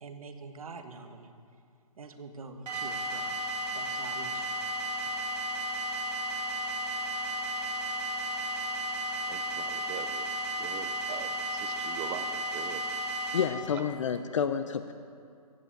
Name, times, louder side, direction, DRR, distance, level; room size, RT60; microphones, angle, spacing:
voice 1, 0.0-1.3 2.0-3.3 3.7-4.5, right 4 dB, 65° right, 6 dB, 1.4 m, -45 dB
sound 1, 2.7-13.4, right 1 dB, 85° right, 3.7 m, -33 dB
voice 2, 9.3-10.3 10.6-12.8 13.7-13.8, right 10 dB, 10° right, 10 dB, 0.3 m, -42 dB
voice 3, 13.3-14.9, left 7 dB, 50° left, 10 dB, 0.7 m, -29 dB
15.0 x 7.9 x 8.9 m, 2.3 s
figure-of-eight pair, 140°, 20 cm